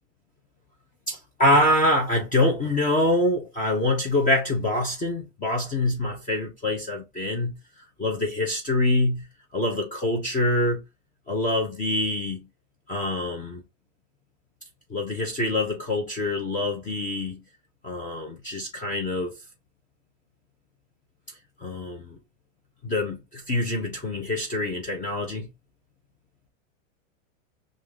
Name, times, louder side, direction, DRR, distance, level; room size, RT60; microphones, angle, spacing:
voice 1, 1.1-7.5 8.0-9.3 9.5-10.8 11.3-12.5 12.9-13.6 14.9-17.4 17.8-19.3 21.6-22.2 22.8-25.5, left 1 dB, 20° left, 0.9 m, -25 dB
4.8 x 2.6 x 3.6 m
supercardioid pair, 135°, 41 cm